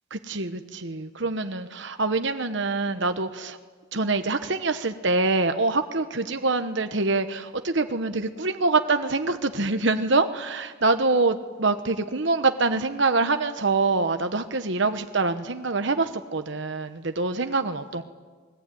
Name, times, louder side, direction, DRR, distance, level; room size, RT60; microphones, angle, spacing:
voice 1, 0.1-3.6 3.9-18.0, right 3 dB, 60° right, 8 dB, 1.1 m, -25 dB
27.5 x 21.5 x 9.3 m, 1.5 s
head